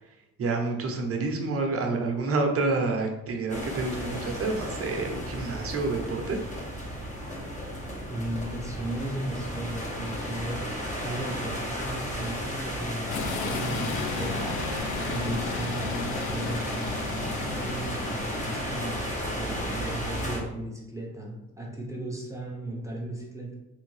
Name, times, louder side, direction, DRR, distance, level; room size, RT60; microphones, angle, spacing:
voice 1, 0.4-6.4, right 3 dB, 50° right, 2 dB, 0.9 m, -28 dB
sound 1, 3.5-20.4, equal, 25° left, 1.2 m, -34 dB
voice 2, 8.1-14.8 15.1-19.0 19.4-23.5, right 1 dB, 10° right, -2 dB, 0.9 m, -35 dB
sound 2, 13.1-19.7, left 5 dB, 80° left, 0.6 m, -35 dB
3.5 x 3.5 x 3.3 m, 0.94 s
cardioid pair, 90°, 30 cm